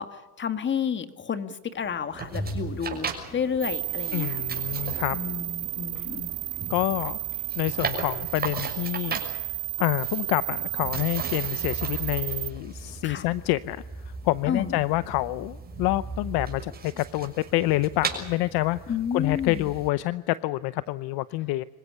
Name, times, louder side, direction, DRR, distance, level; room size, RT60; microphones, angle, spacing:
voice 1, 0.0-4.5 5.1-6.3 13.0-13.2 14.5-14.8 18.9-19.7, left 7 dB, 25° left, 10 dB, 1.9 m, -31 dB
sound 1, 1.7-7.9, right 2 dB, 5° right, 4.0 m, -51 dB
sound 2, 2.1-19.9, right 4 dB, 20° right, 6.4 m, -37 dB
sound 3, 3.6-12.5, right 19 dB, 40° right, 0.7 m, -32 dB
voice 2, 4.1-5.2 6.7-7.2 7.6-9.2 9.8-18.8 19.1-21.6, left 18 dB, 55° left, 16 dB, 0.8 m, -27 dB
26.5 x 16.0 x 9.9 m, 1.1 s
supercardioid pair, 125°, 45 cm